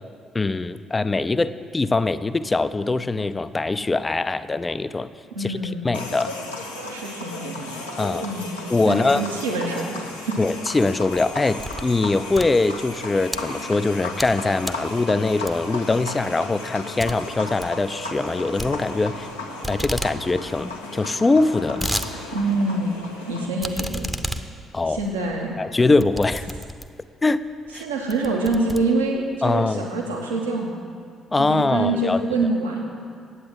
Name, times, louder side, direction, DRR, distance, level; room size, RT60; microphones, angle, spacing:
voice 1, 0.3-5.1 5.4-5.6 5.8-6.3 8.0-8.3 8.7-9.2 10.4-19.3 19.7-21.9 24.7-25.0 25.6-26.5 27.2-27.5 27.7-27.8 29.4-29.9 31.3-32.2, left 3 dB, 25° left, 13 dB, 0.5 m, -22 dB
voice 2, 5.3-5.9 6.9-7.7 8.2-8.5 8.8-10.4 22.3-23.0 23.3-24.1 24.9-25.6 27.7-30.9 31.4-32.8, right 2 dB, 80° right, -1 dB, 1.3 m, -25 dB
sound 1, 5.9-23.5, left 2 dB, 85° left, 1.0 m, -35 dB
sound 2, 11.3-12.0 12.3-13.4 13.9-14.4 14.6-14.9 15.5-15.8 16.2-16.3 16.6-16.7 17.0-17.2 17.4-17.8 18.6-19.3 19.6-20.2 20.5-20.6 20.7-20.8 21.4-22.1 22.5-22.6 23.6-27.1 27.7-27.8 28.1-29.4, right 1 dB, 5° right, 0.8 m, -31 dB
9.7 x 8.5 x 7.8 m, 2.2 s
figure-of-eight pair, 45°, 0 cm